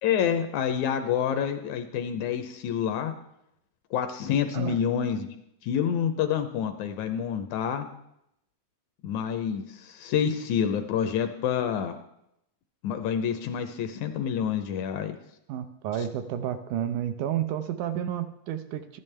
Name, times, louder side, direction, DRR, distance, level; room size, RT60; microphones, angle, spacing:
voice 1, 0.0-3.1 3.9-5.3 5.6-7.9 9.0-12.0 12.8-15.2, left 8 dB, 80° left, 8 dB, 1.8 m, -28 dB
voice 2, 15.5-19.0, right 10 dB, 80° right, 8 dB, 1.9 m, -31 dB
14.0 x 10.5 x 3.3 m, 0.80 s
omnidirectional pair, 3.7 m